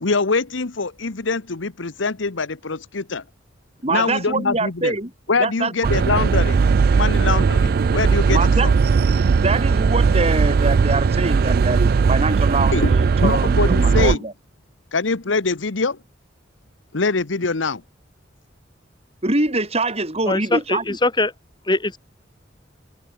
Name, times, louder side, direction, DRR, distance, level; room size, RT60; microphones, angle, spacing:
voice 1, 0.0-3.2 3.9-5.0 5.3-6.6 6.9-8.7 12.7-12.9 13.2-14.2 14.9-16.0 16.9-17.8, left 3 dB, 85° left, 1.2 m, -23 dB
voice 2, 3.8-5.1 5.4-5.7 8.3-8.7 9.3-14.3 19.2-20.8, right 2 dB, 35° right, 4.2 m, -24 dB
sound 1, 5.8-14.2, right 5 dB, 50° right, 0.4 m, -18 dB
voice 3, 20.3-21.3 21.7-22.0, left 2 dB, 25° left, 2.7 m, -21 dB
head